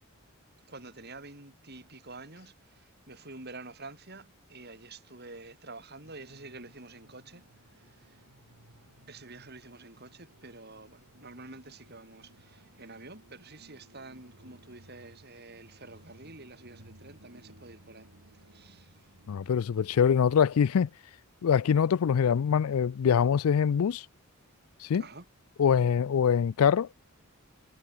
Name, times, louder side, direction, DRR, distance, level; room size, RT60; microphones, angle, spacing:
voice 1, 0.6-7.4 7.7-8.2 9.1-18.1 18.5-19.1 25.0-25.3, right 3 dB, 45° right, 5.4 m, -48 dB
sound 1, 6.0-20.3, right 1 dB, 90° right, 4.1 m, -58 dB
voice 2, 19.3-20.9 21.4-24.1 24.8-25.0 25.6-26.9, left 7 dB, 75° left, 0.4 m, -24 dB
head